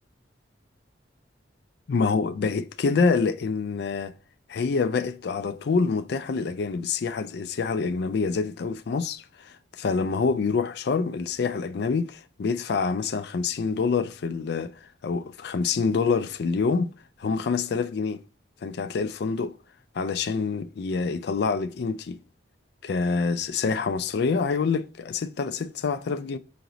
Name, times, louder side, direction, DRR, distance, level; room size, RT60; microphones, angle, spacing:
voice 1, 1.9-4.1 4.5-16.9 17.2-18.2 18.6-19.6 20.0-22.2 22.8-26.4, left 4 dB, 60° left, 0.4 m, -26 dB
5.8 x 2.0 x 3.8 m
head